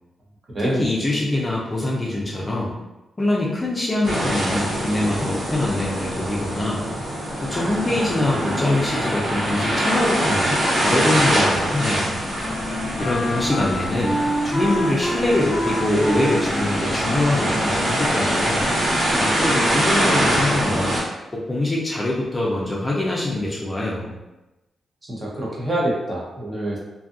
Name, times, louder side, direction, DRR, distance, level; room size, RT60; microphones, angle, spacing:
voice 1, 0.6-2.7 3.2-6.8 7.4-12.2 13.0-18.6 19.2-21.0 21.3-24.2, left 1 dB, 20° left, -4 dB, 0.5 m, -24 dB
sound 1, 4.0-21.0, equal, 85° right, 1.3 m, -23 dB
Wind instrument woodwind instrument, 11.9-19.2, equal, 5° left, 1.1 m, -29 dB
voice 2, 25.1-26.8, right 1 dB, 30° right, -5 dB, 0.8 m, -25 dB
2.6 x 2.4 x 2.5 m, 1.0 s
cardioid pair, 120°, 0 cm